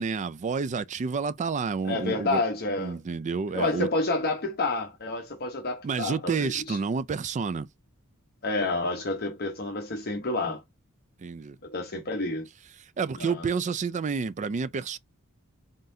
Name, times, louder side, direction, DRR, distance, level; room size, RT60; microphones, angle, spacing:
voice 1, 0.0-2.4 2.8-3.9 5.8-7.7 11.2-11.6 12.8-15.0, right 5 dB, 35° right, 0.3 m, -29 dB
voice 2, 1.8-3.0 3.5-6.8 8.4-10.6 11.6-12.5 13.2-13.5, left 2 dB, 45° left, 0.9 m, -29 dB
3.9 x 3.8 x 2.6 m
head